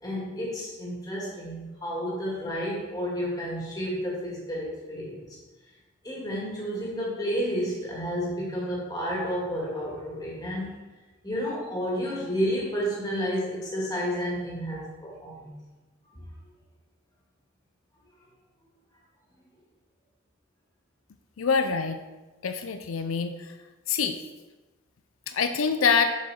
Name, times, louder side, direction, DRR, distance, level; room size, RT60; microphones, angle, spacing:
voice 1, 0.0-5.4 6.0-10.8 11.2-15.5, equal, 20° left, -5 dB, 2.2 m, -31 dB
voice 2, 21.4-22.0 22.4-23.5 23.9-24.2 25.3-26.2, left 5 dB, 90° left, 8 dB, 0.5 m, -25 dB
7.4 x 6.2 x 4.3 m, 1.2 s
head